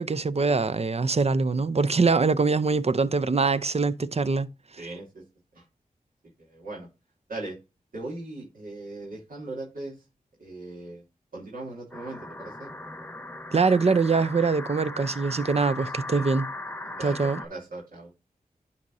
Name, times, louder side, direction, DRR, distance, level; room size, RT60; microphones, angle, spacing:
voice 1, 0.0-4.5 13.5-16.5 17.0-17.4, right 4 dB, 45° right, 0.6 m, -23 dB
voice 2, 4.8-5.2 5.5-5.6 6.4-6.9 7.3-7.6 7.9-9.9 10.4-11.0 11.3-12.7 16.0-16.2 16.8-18.1, right 2 dB, 75° right, 2.9 m, -39 dB
sound 1, 11.9-17.5, left 2 dB, 10° left, 1.0 m, -38 dB
11.0 x 4.2 x 2.6 m
cardioid pair, 40°, 15 cm